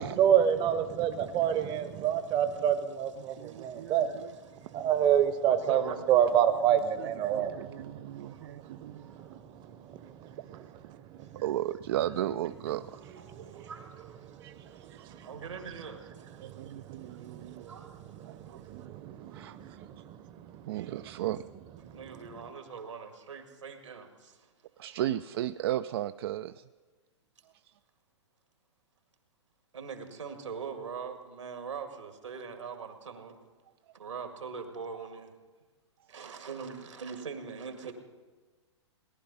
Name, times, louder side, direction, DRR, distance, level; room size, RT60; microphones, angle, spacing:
voice 1, 0.0-4.1 4.7-10.6 11.1-11.4 13.3-13.6 14.2-14.5 14.8-15.3 16.4-17.7 18.2-20.9 21.8-22.0, right 9 dB, 30° right, 0.8 m, -29 dB
voice 2, 1.1-1.5 2.0-2.1 3.2-3.9 4.5-4.9 5.5-6.1 8.1-8.5 8.9-9.4 11.2-11.3 11.7-11.8 12.7-12.8 13.2-18.3 20.8-20.9 21.9-24.5 29.7-33.4 33.9-35.3 36.1-37.9, right 5 dB, 85° right, 2.0 m, -43 dB
voice 3, 3.3-4.3 7.0-9.1 10.5-10.7 11.4-13.2 13.6-13.7 14.4-15.3 16.4-17.7 18.2-19.8 20.7-21.4 24.8-26.6, right 13 dB, 55° right, 0.4 m, -36 dB
18.5 x 11.0 x 5.5 m
hypercardioid pair, 115°, 15 cm